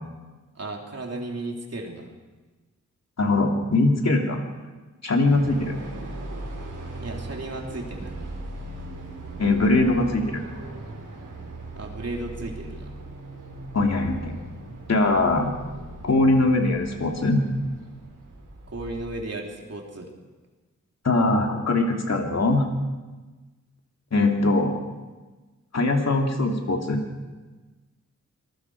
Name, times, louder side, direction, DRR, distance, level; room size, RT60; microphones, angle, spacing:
voice 1, 0.6-2.1 7.0-8.2 11.8-13.0 18.7-20.1, right 2 dB, 55° right, 1 dB, 3.3 m, -34 dB
voice 2, 3.2-4.4 5.0-5.8 9.4-10.4 13.7-14.3 14.9-15.5 16.0-17.4 21.0-22.6 24.1-24.7 25.7-27.0, left 2 dB, 60° left, 2 dB, 2.9 m, -21 dB
sound 1, 5.3-19.1, right 2 dB, 85° right, 4.9 m, -39 dB
26.0 x 20.5 x 4.8 m, 1.2 s
wide cardioid pair, 115°, 30 cm